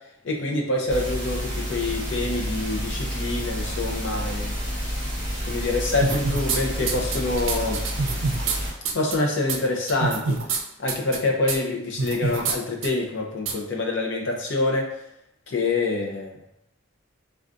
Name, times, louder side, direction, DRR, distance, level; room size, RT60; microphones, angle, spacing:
voice 1, 0.2-4.6 5.4-7.8 8.9-10.4 10.8-14.9 15.5-16.4, left 2 dB, 60° left, 0 dB, 0.6 m, -26 dB
sound 1, 0.9-8.7, equal, 20° left, 1.3 m, -29 dB
sound 2, 6.0-6.6 6.9-8.6 8.8-9.1 9.5-9.6 9.9-10.6 10.9-11.2 11.5-11.6 12.0-12.6 12.8-12.9 13.5-13.6, right 4 dB, 70° right, 0.4 m, -26 dB
3.6 x 2.4 x 2.5 m, 0.80 s
head